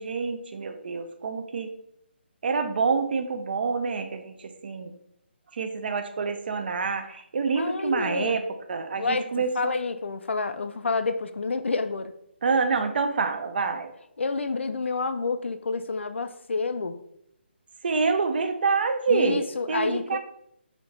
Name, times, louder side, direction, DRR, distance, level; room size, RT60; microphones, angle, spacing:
voice 1, 0.0-1.7 2.4-4.9 5.5-8.4 8.7-9.7 12.4-13.9 17.8-20.2, right 4 dB, 55° right, 7 dB, 0.5 m, -27 dB
voice 2, 7.6-8.4 9.0-12.1 14.2-17.0 19.1-20.2, left 4 dB, 80° left, 10 dB, 0.4 m, -29 dB
4.0 x 2.9 x 3.2 m, 0.74 s
figure-of-eight pair, 150°, 6 cm